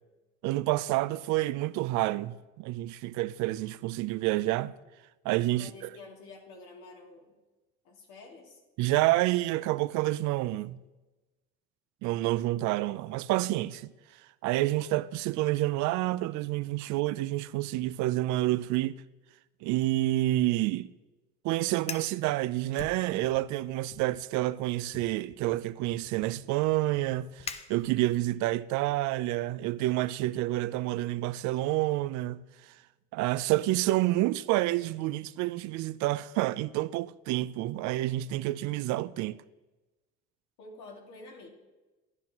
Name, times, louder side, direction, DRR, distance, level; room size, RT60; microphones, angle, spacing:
voice 1, 0.4-4.7 5.2-5.7 8.8-10.8 12.0-13.9 14.4-19.0 19.6-20.9 21.4-32.4 33.1-39.4, right 16 dB, 75° right, 0.4 m, -28 dB
voice 2, 5.5-7.4 7.8-8.6 40.6-41.5, left 3 dB, 80° left, 2.2 m, -49 dB
Fire, 21.7-22.2 22.7-23.5 23.9-24.2 24.9-28.3, left 5 dB, 20° left, 0.6 m, -44 dB
12.5 x 11.0 x 3.0 m
supercardioid pair, 90°, 29 cm